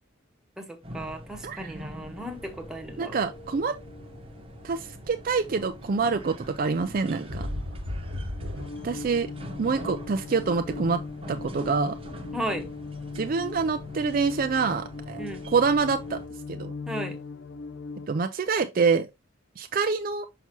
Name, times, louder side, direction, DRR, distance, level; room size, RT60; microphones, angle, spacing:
voice 1, 0.6-3.2 12.3-12.7 15.2-15.5 16.9-17.2, right 1 dB, 5° right, 0.9 m, -35 dB
sound 1, 0.8-16.3, equal, 25° right, 0.9 m, -44 dB
sound 2, 1.7-18.1, left 4 dB, 65° left, 0.5 m, -41 dB
voice 2, 3.0-3.8 4.6-7.5 8.8-9.3 9.6-11.0 11.3-12.0 13.2-15.2 15.5-16.2 16.5-16.7 18.1-19.1 19.6-20.3, right 4 dB, 45° right, 0.4 m, -26 dB
sound 3, 6.9-8.7, left 1 dB, 70° right, 1.2 m, -33 dB
5.9 x 5.6 x 2.8 m
head